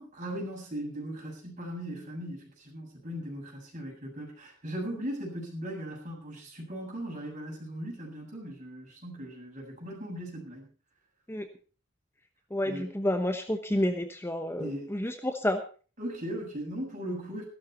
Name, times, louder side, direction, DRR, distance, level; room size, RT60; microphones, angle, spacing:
voice 1, 0.0-10.7 12.6-12.9 14.6-14.9 16.0-17.4, equal, 40° right, -1 dB, 7.5 m, -38 dB
voice 2, 12.5-15.6, left 1 dB, 15° left, 7 dB, 1.0 m, -30 dB
15.5 x 13.0 x 4.4 m, 0.37 s
head